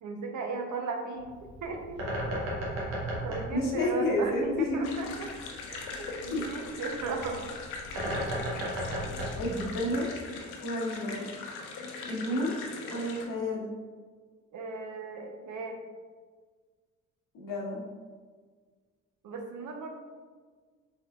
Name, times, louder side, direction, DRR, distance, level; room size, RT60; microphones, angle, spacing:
voice 1, 0.0-1.3 1.6-2.0 3.2-5.3 5.7-7.4 7.9-8.0 14.5-15.9 19.2-19.9, right 4 dB, 50° right, 3 dB, 0.7 m, -36 dB
Bird, 1.1-10.3, equal, 85° right, 0.9 m, -36 dB
voice 2, 3.5-4.9 6.3-6.4 9.4-10.1 10.6-11.2 12.1-12.6 12.9-13.7 17.3-17.8, left 1 dB, 55° left, -2 dB, 1.1 m, -30 dB
sound 1, 4.8-13.2, left 4 dB, 70° left, 0.7 m, -41 dB
4.2 x 3.6 x 2.3 m, 1.5 s
hypercardioid pair, 45°, 39 cm